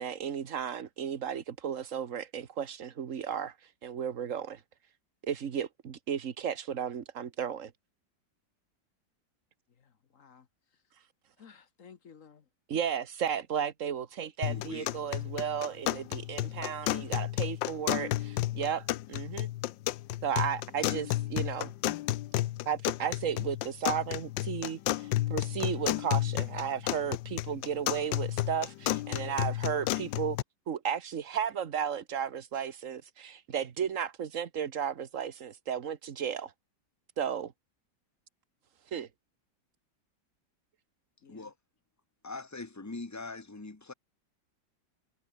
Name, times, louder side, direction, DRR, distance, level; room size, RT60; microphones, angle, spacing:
voice 1, 0.0-3.5 3.8-4.6 5.2-7.7 12.7-19.5 20.2-21.7 22.6-30.4 30.7-36.5 37.2-37.5 38.9-39.1, right 8 dB, 45° right, 1.5 m, -34 dB
voice 2, 9.7-10.5 10.7-10.8 11.4-12.5 41.2-41.5, left 6 dB, 45° left, 1.5 m, -56 dB
sound 1, 14.4-30.4, left 15 dB, 80° left, 1.3 m, -32 dB
voice 3, 14.4-15.0 20.8-20.9 41.3-41.5 42.2-43.9, left 3 dB, 15° left, 0.7 m, -42 dB
omnidirectional pair, 2.0 m